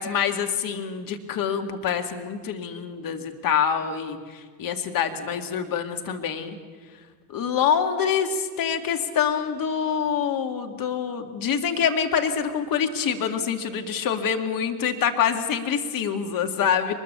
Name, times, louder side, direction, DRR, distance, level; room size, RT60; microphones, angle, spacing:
voice 1, 0.0-6.6 7.3-16.9, left 7 dB, 45° left, 6 dB, 2.3 m, -26 dB
23.0 x 21.0 x 7.0 m, 1.5 s
hypercardioid pair, 75°, 48 cm